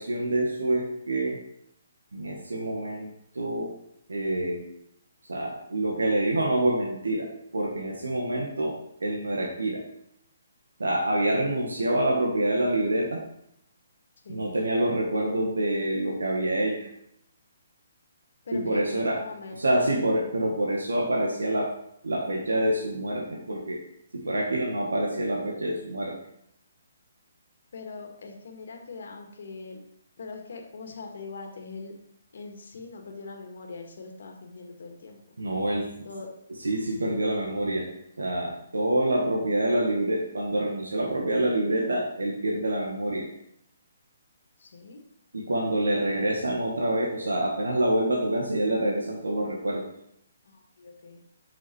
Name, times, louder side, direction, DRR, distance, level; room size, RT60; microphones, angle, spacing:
voice 1, 0.0-1.4 2.1-3.8 4.1-4.7 5.3-9.9 10.8-13.2 14.3-16.9 18.5-21.7 22.0-23.8 24.1-26.2 35.4-36.1 36.5-43.3 45.3-49.9, right 1 dB, 90° right, -1 dB, 1.7 m, -27 dB
voice 2, 18.5-19.8 27.7-29.8 30.2-31.9 32.3-35.2 36.1-36.3 44.7-45.0 50.8-51.2, left 4 dB, 65° left, 2 dB, 1.9 m, -41 dB
7.9 x 6.1 x 4.5 m, 0.75 s
hypercardioid pair, 150°, 0 cm